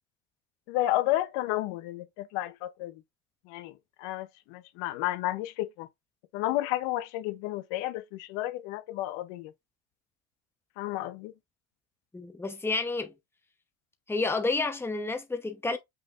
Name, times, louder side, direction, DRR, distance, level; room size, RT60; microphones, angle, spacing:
voice 1, 0.7-3.0 3.5-5.9 6.3-9.5 10.8-11.3, left 15 dB, 75° left, 0.9 m, -32 dB
voice 2, 12.1-13.1 14.1-15.8, left 3 dB, 5° left, 0.9 m, -30 dB
6.0 x 3.6 x 2.5 m
supercardioid pair, 115°, 44 cm